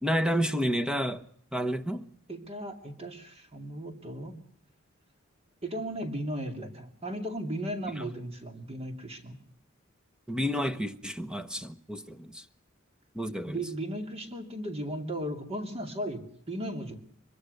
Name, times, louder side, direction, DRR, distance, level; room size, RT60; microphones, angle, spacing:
voice 1, 0.0-1.2 1.5-2.1 10.3-12.4 13.1-13.6, equal, 5° right, 1.1 m, -30 dB
voice 2, 2.3-4.4 5.6-9.4 13.5-17.0, right 1 dB, 30° right, 2.6 m, -36 dB
23.5 x 23.0 x 6.6 m
head